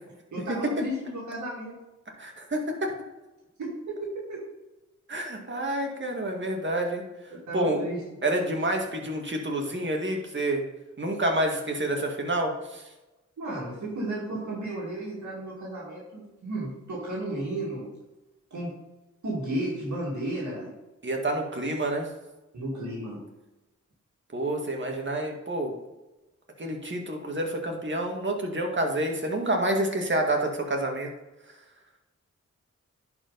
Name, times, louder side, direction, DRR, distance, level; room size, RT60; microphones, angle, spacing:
voice 1, 0.3-1.8 3.6-4.4 7.3-8.0 13.4-17.9 18.5-18.7 19.2-20.7 22.5-23.2, right 1 dB, 80° right, -5 dB, 2.3 m, -33 dB
voice 2, 2.2-2.9 5.1-7.0 7.5-7.8 8.2-10.6 11.0-12.8 21.0-22.1 24.3-25.7 26.6-31.1, right 1 dB, 40° right, 1 dB, 2.0 m, -28 dB
10.5 x 4.7 x 4.0 m, 1.1 s
cardioid pair, 55°, 29 cm